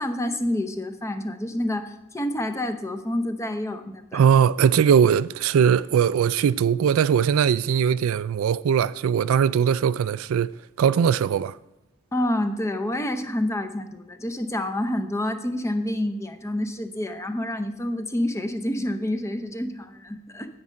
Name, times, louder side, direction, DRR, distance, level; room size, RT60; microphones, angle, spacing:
voice 1, 0.0-4.2 12.1-20.6, left 1 dB, 15° left, 0.6 m, -28 dB
voice 2, 4.1-10.5 10.8-11.6, right 7 dB, 75° right, 0.3 m, -20 dB
9.6 x 5.5 x 7.5 m
head